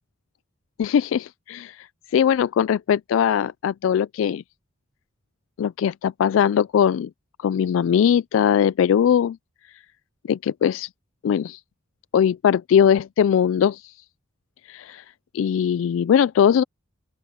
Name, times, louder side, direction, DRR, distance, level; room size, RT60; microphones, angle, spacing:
voice 1, 0.8-1.9 2.1-4.4 5.6-7.1 7.4-9.4 10.3-10.9 11.2-11.6 12.1-13.9 14.7-15.0 15.3-16.6, left 8 dB, 80° left, 0.3 m, -20 dB
open air
head